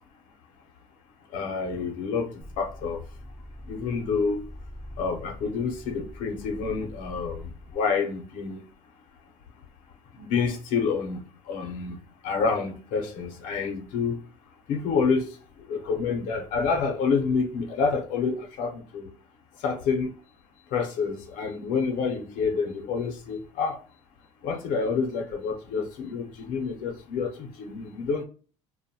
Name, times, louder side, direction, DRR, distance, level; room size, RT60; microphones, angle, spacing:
voice 1, 1.3-2.3 2.6-3.0 3.7-4.4 5.0-7.5 7.7-8.6 10.2-11.2 11.5-11.9 12.2-14.2 14.7-15.3 15.7-19.1 19.6-20.1 20.7-23.8 24.4-28.2, left 5 dB, 65° left, 0.6 m, -28 dB
sound 1, 2.4-7.7, left 1 dB, ahead, 0.6 m, -44 dB
2.5 x 2.1 x 2.6 m
supercardioid pair, 115°, 15 cm